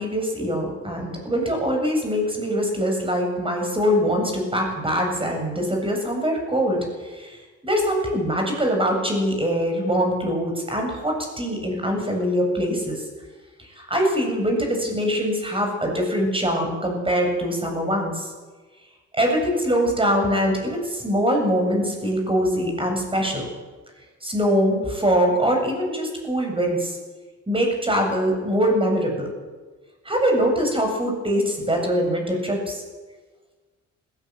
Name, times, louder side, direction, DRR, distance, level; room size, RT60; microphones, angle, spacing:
voice 1, 0.0-7.4 7.6-13.1 13.7-18.3 19.1-23.5 24.2-27.0 27.5-29.3 30.0-32.8, equal, 15° right, 2 dB, 7.9 m, -23 dB
18.5 x 18.0 x 9.2 m, 1.3 s
cardioid pair, 90°, 30 cm